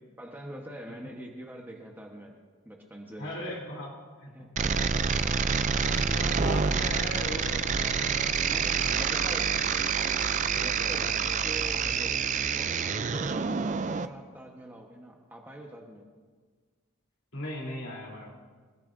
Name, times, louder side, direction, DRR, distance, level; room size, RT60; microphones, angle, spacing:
voice 1, 0.2-2.3 2.6-3.6 4.3-4.6 8.5-9.5 10.5-13.5 13.9-16.1, right 1 dB, 10° right, 0 dB, 1.2 m, -44 dB
voice 2, 3.2-5.2 5.9-9.9 10.4-11.1 17.3-18.3, left 1 dB, 55° left, -2 dB, 3.5 m, -40 dB
sound 1, 4.6-14.1, right 6 dB, 35° right, 0.4 m, -27 dB
27.5 x 15.0 x 2.7 m, 1.5 s
head